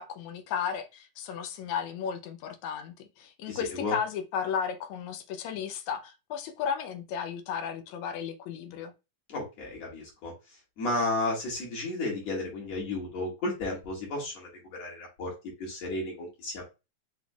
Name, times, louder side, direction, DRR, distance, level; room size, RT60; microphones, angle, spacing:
voice 1, 0.0-8.9, left 7 dB, 75° left, 1.8 m, -34 dB
voice 2, 3.5-3.9 9.3-10.3 10.8-14.5 14.8-15.3 15.6-16.7, left 2 dB, 55° left, 2.9 m, -33 dB
6.0 x 3.6 x 2.4 m
omnidirectional pair, 3.8 m